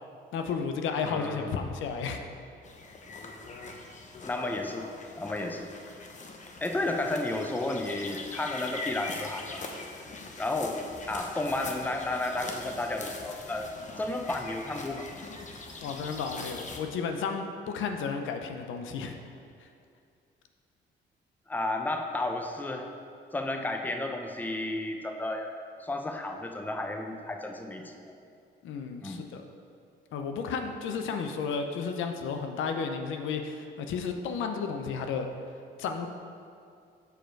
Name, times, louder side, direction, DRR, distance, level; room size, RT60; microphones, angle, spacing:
voice 1, 0.3-2.2 3.2-3.3 15.8-19.2 19.6-19.7 28.6-29.4 30.1-35.3 35.8-36.1, left 5 dB, 80° left, 5 dB, 0.6 m, -33 dB
voice 2, 1.0-1.6 4.2-4.9 5.2-5.7 6.6-9.6 10.4-10.8 11.1-15.1 21.5-22.9 23.3-25.5 25.8-28.1 29.0-29.2, left 2 dB, 10° left, 4 dB, 0.6 m, -32 dB
sound 1, 2.6-16.8, left 3 dB, 40° left, 0.8 m, -42 dB
6.7 x 4.9 x 4.5 m, 2.4 s
cardioid pair, 90°, 20 cm